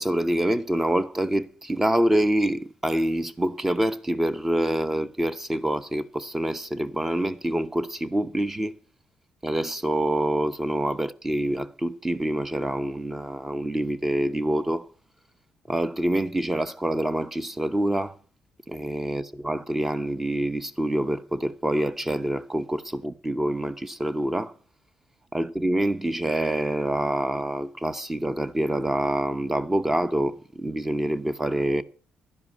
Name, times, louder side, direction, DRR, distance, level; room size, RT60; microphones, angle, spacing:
voice 1, 0.0-8.7 9.4-14.9 15.7-18.1 18.7-24.5 25.3-31.8, right 1 dB, 10° right, 0.8 m, -26 dB
12.0 x 10.5 x 6.2 m
cardioid pair, 150°, 3 cm